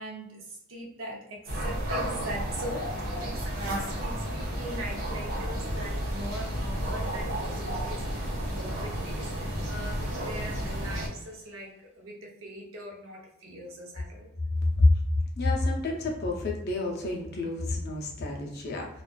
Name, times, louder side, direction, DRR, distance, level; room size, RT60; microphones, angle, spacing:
voice 1, 0.0-8.3 8.6-14.3, right 1 dB, 70° right, -1 dB, 0.6 m, -41 dB
sound 1, 1.5-11.1, equal, 85° right, 1.0 m, -32 dB
sound 2, 5.6-11.8, right 1 dB, 30° right, 0.7 m, -50 dB
voice 2, 15.4-18.9, left 2 dB, 45° left, 0 dB, 0.5 m, -27 dB
2.4 x 2.3 x 2.2 m, 0.82 s
head